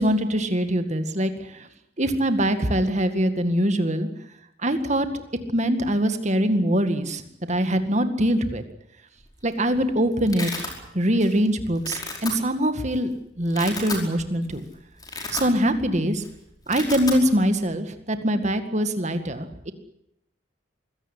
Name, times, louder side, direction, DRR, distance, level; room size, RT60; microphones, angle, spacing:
voice 1, 0.0-1.7 2.0-4.1 4.6-5.1 5.5-8.6 9.4-10.5 10.9-13.1 13.4-14.6 15.3-16.2 16.7-19.7, equal, 35° right, 9 dB, 2.0 m, -23 dB
Domestic sounds home sounds, 9.3-9.6 9.9-10.7 11.2-11.5 11.8-12.3 12.9-13.0 13.4-14.1 14.5-14.6 14.9-15.9 16.1-16.3 16.5-17.2, left 3 dB, 20° left, 5.0 m, -33 dB
24.0 x 16.5 x 9.9 m, 0.80 s
head